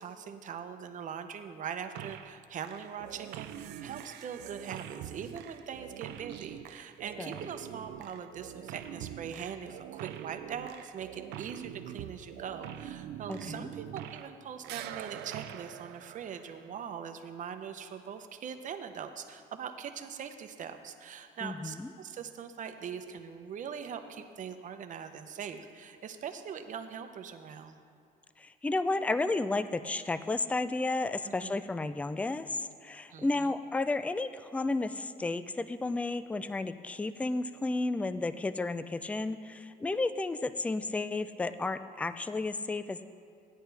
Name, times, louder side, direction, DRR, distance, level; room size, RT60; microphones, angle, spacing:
voice 1, 0.0-27.8 31.2-31.6 33.1-33.5, right 7 dB, 50° right, 7 dB, 0.8 m, -42 dB
sound 1, 2.0-2.4 2.6-14.4 14.6-16.8, right 11 dB, 85° right, 0.5 m, -44 dB
voice 2, 13.3-13.7 21.4-21.9 28.4-43.0, left 2 dB, 10° left, 12 dB, 0.4 m, -32 dB
15.5 x 10.0 x 3.4 m, 2.3 s
cardioid pair, 110°, 17 cm